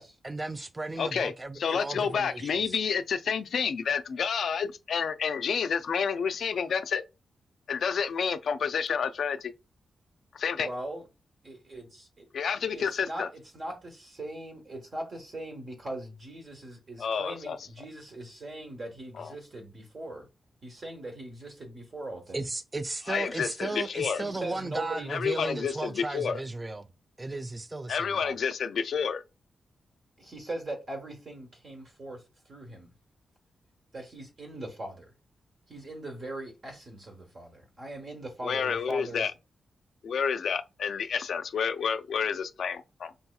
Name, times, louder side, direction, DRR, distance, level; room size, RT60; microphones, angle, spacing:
voice 1, 0.2-2.7 22.3-26.9 27.2-28.3, right 2 dB, 20° right, 0.3 m, -35 dB
voice 2, 1.0-7.0 7.7-9.5 10.3-10.7 12.3-13.3 17.0-17.7 19.2-19.3 23.1-24.2 25.1-26.4 27.9-29.2 38.4-39.3 40.0-43.1, left 6 dB, 65° left, 0.3 m, -29 dB
voice 3, 10.6-11.0 11.4-12.3 12.7-20.3 20.6-22.4 24.2-25.2 30.2-32.2 32.5-32.9 33.9-35.1 35.7-39.3, right 1 dB, 40° right, 1.1 m, -40 dB
5.3 x 2.8 x 2.3 m
wide cardioid pair, 145°, 0 cm